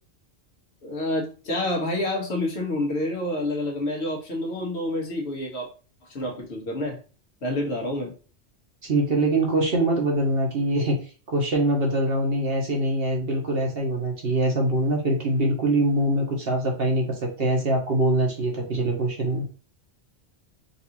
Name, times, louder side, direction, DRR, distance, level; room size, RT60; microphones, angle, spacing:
voice 1, 0.8-5.7 6.1-7.0 7.4-8.1, left 1 dB, 70° left, 0 dB, 1.4 m, -28 dB
voice 2, 8.8-11.0 11.3-19.4, right 1 dB, 60° right, 0 dB, 1.1 m, -23 dB
4.0 x 2.6 x 2.8 m, 0.36 s
omnidirectional pair, 1.2 m